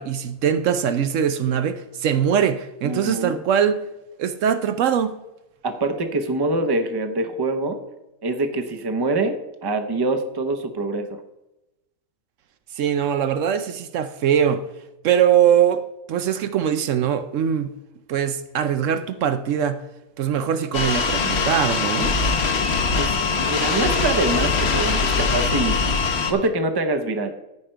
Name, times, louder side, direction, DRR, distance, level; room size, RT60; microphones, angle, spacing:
voice 1, 0.0-3.8 4.2-5.2 12.8-14.7 15.0-15.8 16.1-17.7 18.1-19.8 20.2-22.1, right 8 dB, 70° right, 0.9 m, -21 dB
voice 2, 2.8-3.4 5.6-7.8 8.2-11.2 22.9-25.8 26.3-27.3, right 2 dB, 25° right, 0.7 m, -25 dB
sound 1, 20.7-26.3, left 4 dB, 55° left, 1.1 m, -22 dB
14.0 x 5.0 x 4.5 m
omnidirectional pair, 1.4 m